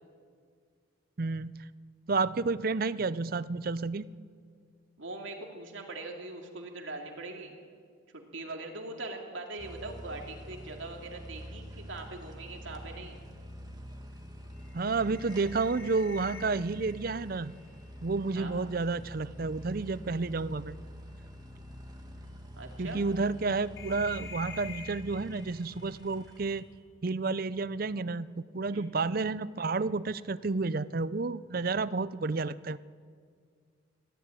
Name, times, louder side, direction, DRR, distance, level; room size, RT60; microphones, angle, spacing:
voice 1, 1.2-1.5 2.1-4.1 14.7-17.5 18.0-20.8 22.8-26.6 27.0-32.8, right 3 dB, 45° right, 17 dB, 0.5 m, -31 dB
voice 2, 5.0-7.6 8.1-13.2 18.3-18.5 22.6-23.0 28.7-28.9, right 2 dB, 70° right, 2 dB, 2.6 m, -41 dB
sound 1, 9.6-26.6, equal, 20° right, 1.8 m, -46 dB
sound 2, 12.9-19.2 19.5-20.0 21.1-21.2 21.7-21.8 22.7-26.7, left 5 dB, 80° left, 3.6 m, -50 dB
22.0 x 15.0 x 9.1 m, 2.1 s
head